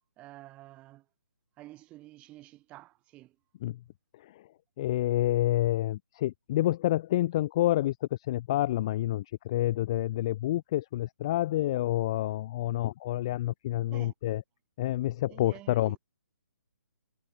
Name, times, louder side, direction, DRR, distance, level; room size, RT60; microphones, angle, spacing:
voice 1, 0.2-1.0 1.6-3.4 13.9-14.1 15.3-16.0, right 17 dB, 10° right, 7.6 m, -49 dB
voice 2, 4.8-14.4 14.8-16.0, left 14 dB, 15° left, 0.6 m, -28 dB
hypercardioid pair, 175°, 10 cm